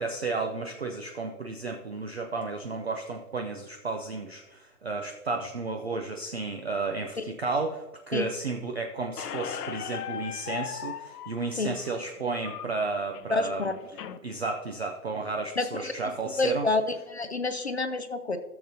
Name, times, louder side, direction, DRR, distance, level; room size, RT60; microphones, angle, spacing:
voice 1, 0.0-13.7 14.2-16.7, right 3 dB, 45° right, 4 dB, 0.5 m, -32 dB
Squeak, 9.2-14.2, left 9 dB, 70° left, 0.8 m, -39 dB
voice 2, 13.3-13.7 15.6-15.9 16.4-16.8 17.1-18.4, left 3 dB, 45° left, 9 dB, 0.4 m, -28 dB
14.0 x 6.7 x 2.7 m, 1.1 s
hypercardioid pair, 175°, 48 cm